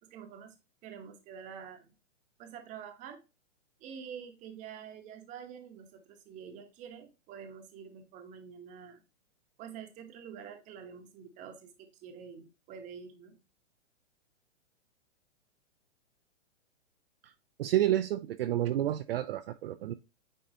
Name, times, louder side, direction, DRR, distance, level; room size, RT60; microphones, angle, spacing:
voice 1, 0.0-1.9 2.4-3.2 3.8-9.0 9.6-13.4, right 7 dB, 20° right, 0.9 m, -47 dB
voice 2, 17.6-19.9, right 12 dB, 55° right, 0.5 m, -30 dB
8.9 x 3.9 x 2.7 m
hypercardioid pair, 145°, 36 cm